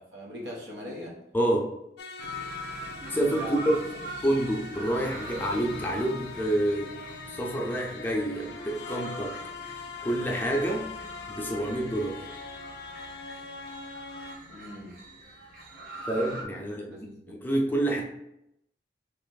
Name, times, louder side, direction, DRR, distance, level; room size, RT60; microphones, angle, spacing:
voice 1, 0.0-1.2 3.3-3.7 14.5-14.9 16.7-17.3, equal, 80° right, -2 dB, 1.1 m, -41 dB
voice 2, 1.3-1.7 3.1-3.7 4.2-6.9 7.3-9.4 10.0-10.9 11.3-12.2 16.1-16.9 17.3-18.0, right 1 dB, 10° left, -1 dB, 0.5 m, -28 dB
sound 1, 2.0-14.4, left 4 dB, 75° left, 0.4 m, -42 dB
sound 2, 2.2-16.4, right 1 dB, 55° right, 0.8 m, -43 dB
3.3 x 3.0 x 3.9 m, 0.81 s
head